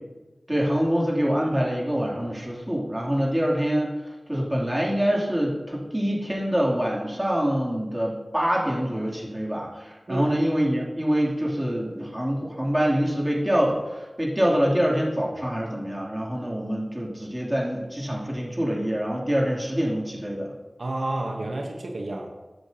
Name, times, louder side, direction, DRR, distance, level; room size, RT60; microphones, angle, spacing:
voice 1, 0.5-4.0 4.3-20.5, equal, 15° right, -4 dB, 2.8 m, -25 dB
voice 2, 20.8-22.3, right 2 dB, 85° right, 2 dB, 1.0 m, -30 dB
13.5 x 8.0 x 2.8 m, 1.2 s
wide cardioid pair, 50°, 0 cm